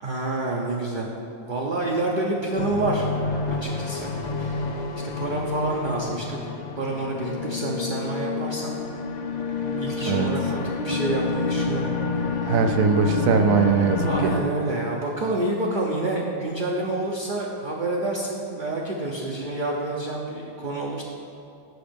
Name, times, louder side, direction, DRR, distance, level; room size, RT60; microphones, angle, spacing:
voice 1, 0.0-1.2 1.5-3.1 3.5-4.7 5.0-8.7 9.8-12.7 14.0-21.0, right 2 dB, 45° right, -2 dB, 0.7 m, -28 dB
sound 1, 2.6-14.4, left 4 dB, 60° left, 0.4 m, -28 dB
voice 2, 12.5-14.3, right 5 dB, 80° right, 6 dB, 1.0 m, -21 dB
7.8 x 6.3 x 5.1 m, 2.7 s
omnidirectional pair, 1.4 m